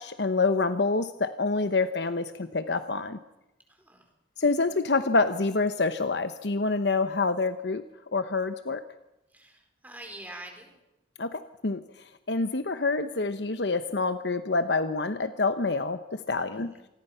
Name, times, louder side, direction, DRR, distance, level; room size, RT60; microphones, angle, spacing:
voice 1, 0.0-3.2 4.4-7.8 8.1-8.8 11.2-11.8 12.3-16.7, left 3 dB, 70° left, 10 dB, 1.0 m, -27 dB
voice 2, 3.7-4.1 9.3-10.8 16.5-16.9, right 1 dB, 10° right, 3 dB, 4.4 m, -46 dB
27.0 x 20.0 x 5.8 m, 0.93 s
head